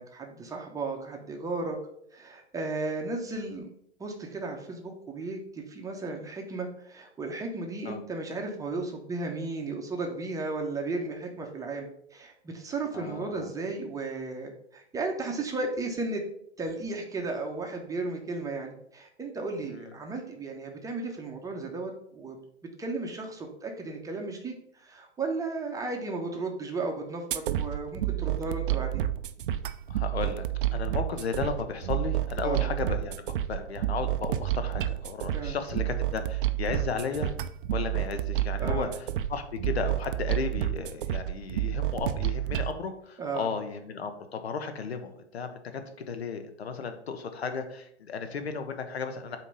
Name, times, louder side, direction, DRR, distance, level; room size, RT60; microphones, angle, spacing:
voice 1, 0.0-1.8 2.1-3.7 4.0-16.2 16.6-22.4 22.8-29.1 32.4-32.7 35.3-35.6 38.6-38.9 43.2-43.5, right 3 dB, 10° right, 1 dB, 0.8 m, -34 dB
voice 2, 12.9-13.5 19.7-19.9 29.9-30.4 30.7-37.3 37.7-38.9 39.3-45.6 46.1-49.4, left 5 dB, 65° left, 8 dB, 1.1 m, -34 dB
sound 1, 27.3-42.7, right 13 dB, 50° right, 0.5 m, -30 dB
8.2 x 2.9 x 5.4 m, 0.70 s
figure-of-eight pair, 110°, 34 cm